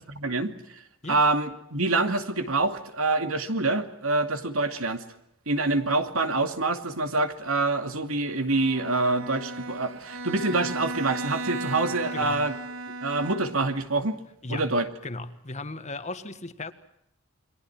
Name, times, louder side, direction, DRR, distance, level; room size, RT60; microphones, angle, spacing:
voice 1, 0.2-0.8 1.1-5.0 5.5-12.5 13.0-14.2 14.5-14.9, right 3 dB, 80° right, 2.5 m, -26 dB
Bowed string instrument, 8.5-13.8, right 2 dB, 65° right, 2.1 m, -36 dB
voice 2, 12.1-12.4 14.4-14.8 15.0-16.7, left 2 dB, 35° left, 1.7 m, -36 dB
29.5 x 23.0 x 6.2 m
head